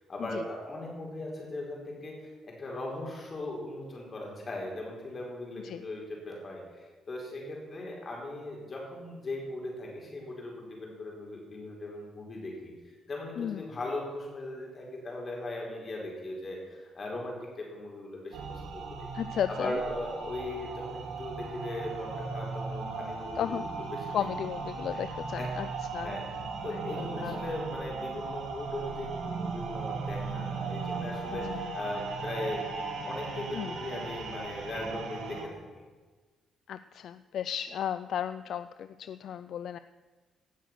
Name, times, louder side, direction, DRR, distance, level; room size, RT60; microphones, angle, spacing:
voice 1, 0.1-12.7 13.1-19.1 19.5-24.2 24.9-25.0 25.3-25.5 26.0-26.3 26.6-32.6 33.0-35.8, left 1 dB, 40° left, -1 dB, 4.6 m, -39 dB
voice 2, 13.4-13.7 19.1-19.8 23.4-23.6 24.1-25.7 25.9-26.2 26.7-27.4 33.5-33.8 36.7-39.8, left 9 dB, 70° left, 13 dB, 0.3 m, -34 dB
sound 1, 18.3-35.4, right 4 dB, 85° right, 2.5 m, -37 dB
17.5 x 6.5 x 6.1 m, 1.4 s
cardioid pair, 90°, 0 cm